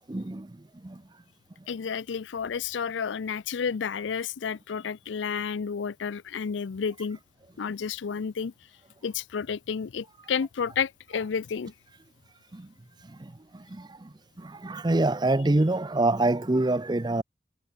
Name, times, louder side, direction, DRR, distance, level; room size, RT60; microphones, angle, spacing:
voice 1, 0.1-1.0 12.5-12.7 13.1-17.2, right 2 dB, 25° right, 0.6 m, -27 dB
voice 2, 1.7-7.2 7.6-8.5 9.0-11.7, left 6 dB, 80° left, 0.5 m, -31 dB
head